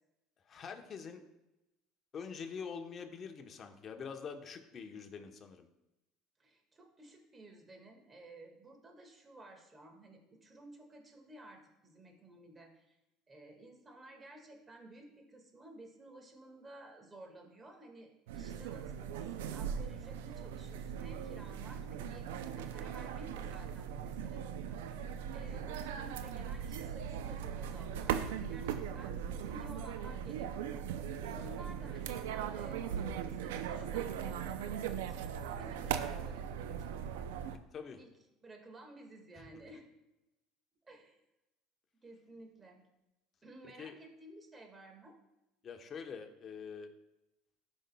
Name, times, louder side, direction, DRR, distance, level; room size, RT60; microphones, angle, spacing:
voice 1, 0.5-1.2 2.1-5.7 37.7-38.0 43.6-44.0 45.6-46.9, left 6 dB, 40° left, 5 dB, 1.0 m, -45 dB
voice 2, 6.4-13.0 13.3-28.2 28.5-30.9 31.3-36.9 38.0-38.1 38.4-39.9 40.8-41.2 42.0-42.8 43.4-45.2, right 2 dB, 20° right, 3 dB, 1.8 m, -54 dB
sound 1, 18.3-37.6, right 8 dB, 85° right, 0.4 m, -39 dB
13.0 x 5.3 x 2.3 m, 0.93 s
supercardioid pair, 95°, 0 cm